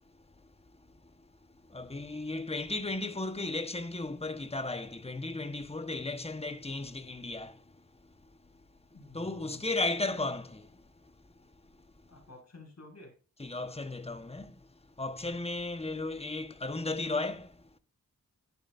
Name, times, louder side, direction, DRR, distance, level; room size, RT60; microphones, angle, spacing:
voice 1, 1.7-7.6 9.1-10.8 13.4-14.7 15.0-17.6, left 2 dB, 20° left, 1.2 m, -35 dB
voice 2, 8.9-9.6 12.1-13.1, left 2 dB, 55° left, 6.3 m, -52 dB
11.0 x 11.0 x 2.6 m
wide cardioid pair, 85°, 32 cm